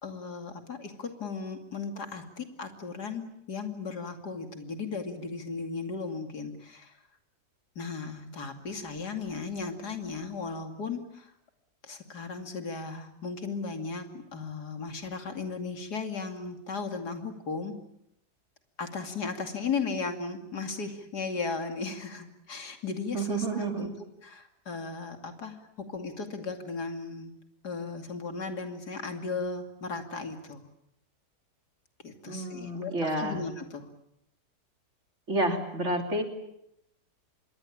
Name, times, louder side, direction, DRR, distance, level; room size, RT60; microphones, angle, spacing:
voice 1, 0.0-6.9 7.8-11.3 11.8-17.8 18.8-23.9 24.2-27.3 27.6-30.6 32.0-33.9, left 4 dB, 75° left, 6 dB, 3.1 m, -36 dB
voice 2, 23.1-23.9 32.2-33.4 35.3-36.2, right 2 dB, 45° right, 4 dB, 3.6 m, -29 dB
26.5 x 22.0 x 8.7 m, 0.79 s
omnidirectional pair, 1.7 m